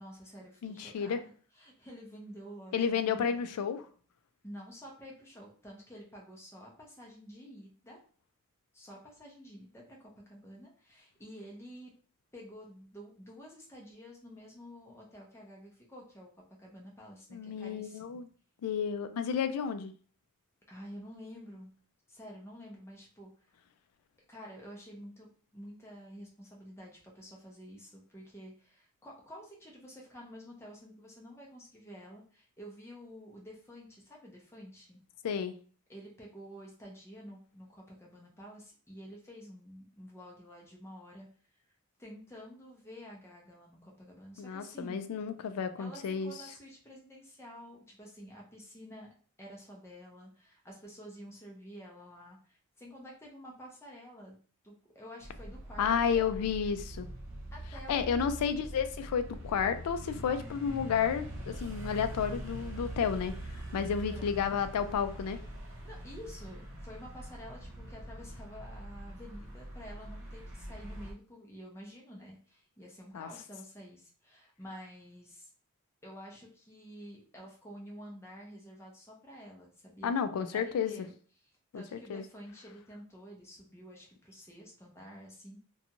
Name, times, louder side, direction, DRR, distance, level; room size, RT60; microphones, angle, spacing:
voice 1, 0.0-3.5 4.4-8.0 8.7-11.9 12.3-18.2 20.7-21.7 22.1-23.5 24.3-35.0 35.9-41.3 42.0-45.1 45.8-49.1 49.4-54.4 54.6-56.5 57.5-58.4 63.8-64.4 65.6-75.5 76.0-85.7, equal, 10° left, -2 dB, 0.6 m, -50 dB
voice 2, 0.6-1.2 2.7-3.8 17.3-18.3 18.6-19.9 35.2-35.5 44.4-46.3 55.8-57.1 57.9-65.4 73.1-73.3 80.0-80.9 81.7-81.8 82.1-82.2, left 7 dB, 90° left, 10 dB, 0.3 m, -31 dB
sound 1, 55.2-71.1, right 1 dB, 55° right, 0.6 m, -43 dB
2.5 x 2.3 x 2.8 m, 0.43 s
head